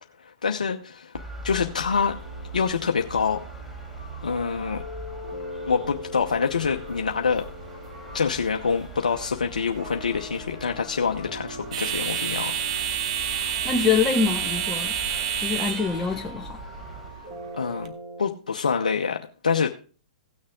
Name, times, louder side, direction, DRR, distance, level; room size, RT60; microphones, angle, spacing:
voice 1, 0.2-1.1 1.4-2.1 2.5-3.4 4.2-4.8 5.7-7.4 8.1-12.5 17.5-17.9 18.2-19.7, left 5 dB, 80° left, 0.9 m, -26 dB
sound 1, 1.1-17.1, right 1 dB, 5° right, 3.4 m, -42 dB
sound 2, 1.6-18.3, equal, 25° right, 2.3 m, -42 dB
sound 3, 6.5-17.9, right 8 dB, 55° right, 1.3 m, -31 dB
voice 2, 13.6-15.0 15.4-16.6, left 6 dB, 10° left, 1.0 m, -25 dB
17.0 x 6.5 x 3.6 m
hypercardioid pair, 120°, 4 cm